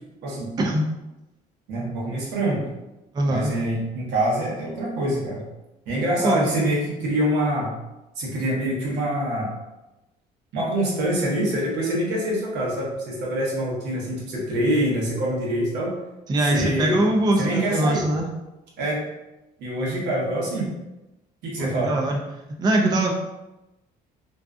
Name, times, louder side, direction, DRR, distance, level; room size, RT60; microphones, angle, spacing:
voice 1, 0.2-0.5 1.7-2.6 3.3-5.4 5.9-7.7 8.2-9.5 10.5-15.9 16.5-17.0 17.4-18.0 18.8-19.0 19.6-20.7 21.4-21.9, right 1 dB, 85° right, -4 dB, 0.9 m, -25 dB
voice 2, 3.1-3.5 6.2-6.5 16.3-18.3 21.6-22.2 22.6-23.1, right 1 dB, 25° right, 1 dB, 0.3 m, -22 dB
2.5 x 2.3 x 2.3 m, 0.98 s
cardioid pair, 110°, 17 cm